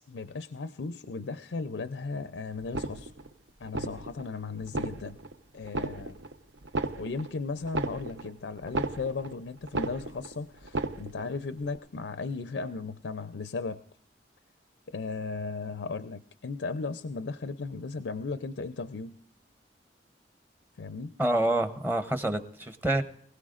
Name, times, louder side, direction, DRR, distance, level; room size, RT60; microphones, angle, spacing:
voice 1, 0.0-3.1 3.6-5.2 5.5-6.2 7.0-13.8 14.9-19.2 20.8-21.1, left 4 dB, 90° left, 0.5 m, -36 dB
sound 1, 2.6-3.3 3.7-4.3 4.6-5.3 5.7-6.3 6.6-9.3 9.6-10.3 10.6-11.3 11.6-11.8, right 2 dB, 75° right, 0.8 m, -34 dB
voice 2, 21.2-23.0, right 1 dB, 10° right, 0.7 m, -27 dB
24.0 x 16.5 x 2.5 m
head